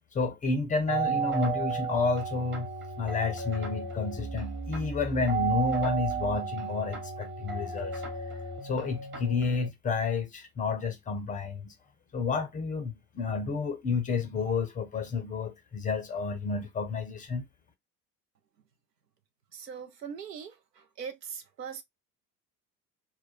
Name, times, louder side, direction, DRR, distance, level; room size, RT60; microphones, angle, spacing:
voice 1, 0.1-2.7 3.0-8.0 8.6-11.7 12.1-17.4, left 4 dB, 15° left, 0.5 m, -30 dB
sound 1, 0.9-9.7, right 5 dB, 25° right, 1.1 m, -33 dB
voice 2, 19.5-21.8, right 7 dB, 80° right, 0.7 m, -41 dB
2.3 x 2.2 x 3.7 m
figure-of-eight pair, 65°, 49 cm